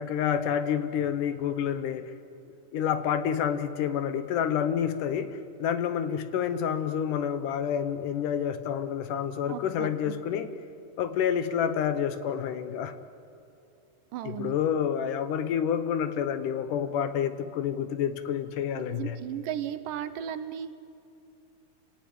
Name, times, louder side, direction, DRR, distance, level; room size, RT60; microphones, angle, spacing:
voice 1, 0.0-2.1 2.7-10.5 11.0-13.0 14.2-19.2, left 8 dB, 70° left, 11 dB, 2.3 m, -28 dB
voice 2, 9.5-10.1 14.1-14.6 18.8-20.7, right 10 dB, 75° right, 12 dB, 2.4 m, -35 dB
28.5 x 17.5 x 9.4 m, 2.5 s
omnidirectional pair, 4.0 m